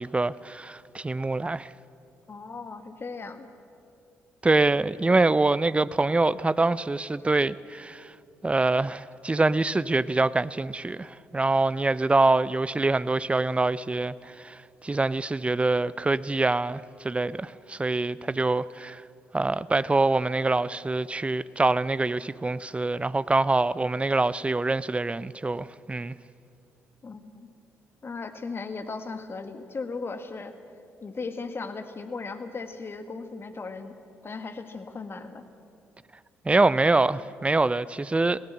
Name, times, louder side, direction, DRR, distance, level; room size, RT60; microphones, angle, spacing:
voice 1, 0.0-1.7 4.4-8.1 8.4-19.0 19.3-26.1 36.4-38.4, right 2 dB, 20° right, 0.6 m, -25 dB
voice 2, 2.3-3.5 27.0-27.5 28.0-30.5 31.0-33.9 34.2-35.4, left 4 dB, 35° left, 1.7 m, -37 dB
20.5 x 17.0 x 7.7 m
figure-of-eight pair, 40°, 7 cm